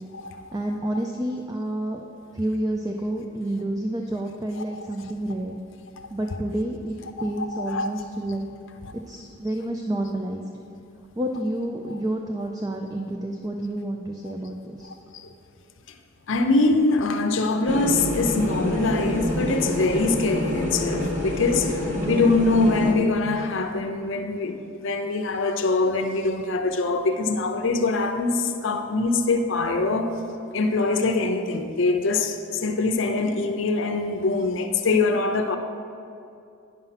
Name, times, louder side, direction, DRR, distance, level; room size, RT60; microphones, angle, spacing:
voice 1, 0.5-2.0 2.3-5.6 6.1-8.5 8.9-10.4 11.2-14.9 22.0-22.2, right 1 dB, 20° right, 0.4 m, -29 dB
voice 2, 4.6-5.1 6.0-6.4 7.0-8.0 8.8-8.9 14.8-15.3 16.3-30.1 30.5-35.6, left 3 dB, 65° left, 0.6 m, -24 dB
sound 1, 17.7-22.9, left 1 dB, 40° right, 1.1 m, -27 dB
9.9 x 5.5 x 5.7 m
head